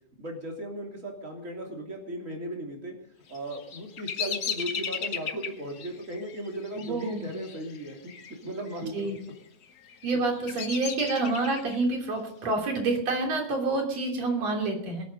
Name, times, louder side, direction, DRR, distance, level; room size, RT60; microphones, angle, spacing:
voice 1, 0.2-2.9 3.3-9.1 10.1-10.2, right 1 dB, 25° right, 0 dB, 3.2 m, -37 dB
Bird vocalization bird call bird song, 3.3-8.3 8.6-9.2 9.8-11.8, left 7 dB, 85° left, 0.8 m, -36 dB
voice 2, 6.8-7.3 8.9-9.2 10.0-15.0, right 3 dB, 55° right, 2 dB, 4.2 m, -28 dB
23.0 x 8.5 x 5.3 m, 0.67 s
omnidirectional pair, 3.6 m